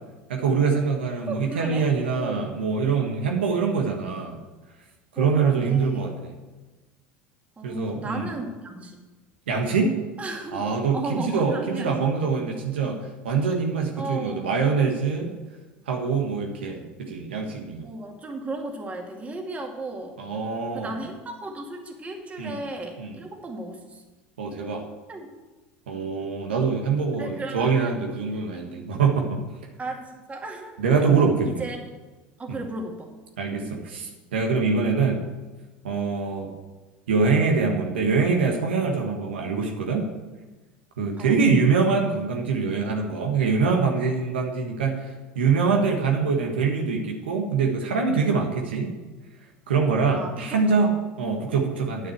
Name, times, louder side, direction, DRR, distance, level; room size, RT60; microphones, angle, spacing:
voice 1, 0.3-4.4 5.1-6.3 7.6-8.3 9.5-10.0 10.5-15.4 15.9-17.9 20.2-20.9 22.4-22.6 23.0-23.1 24.4-24.9 25.9-29.4 30.8-31.6 32.5-32.6 33.4-35.2 35.8-36.5 37.1-40.1 41.0-48.9 49.7-52.1, right 5 dB, 85° right, 2 dB, 1.5 m, -24 dB
voice 2, 1.3-2.5 5.2-6.1 7.6-9.0 10.2-10.6 10.9-12.0 14.0-14.5 17.8-20.2 20.7-24.0 25.1-25.3 27.1-27.9 29.8-31.8 32.4-33.1 33.6-33.9 41.2-41.4 50.2-50.9 51.3-51.6, right 2 dB, 25° right, 2 dB, 2.3 m, -35 dB
9.4 x 6.6 x 8.0 m, 1.2 s
hypercardioid pair, 80°, 6 cm